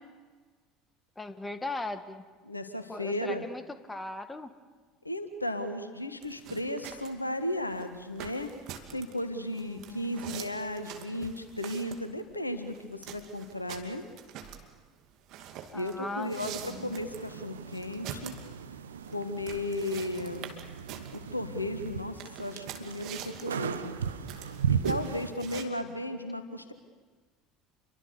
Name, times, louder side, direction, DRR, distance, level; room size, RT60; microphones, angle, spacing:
voice 1, 1.2-2.2 2.9-4.5 9.5-10.3 15.7-16.3 16.6-17.0, left 2 dB, 15° left, 11 dB, 1.8 m, -39 dB
voice 2, 2.4-3.4 5.0-8.5 8.9-14.0 15.7-18.3 19.1-20.5 21.1-24.0 24.7-26.7, left 1 dB, 90° left, 9 dB, 1.6 m, -35 dB
sound 1, 6.2-25.7, right 9 dB, 50° right, 2.5 m, -46 dB
sound 2, 16.4-25.3, right 7 dB, 75° right, 1.1 m, -36 dB
28.5 x 23.5 x 6.9 m, 1.4 s
figure-of-eight pair, 65°, 0 cm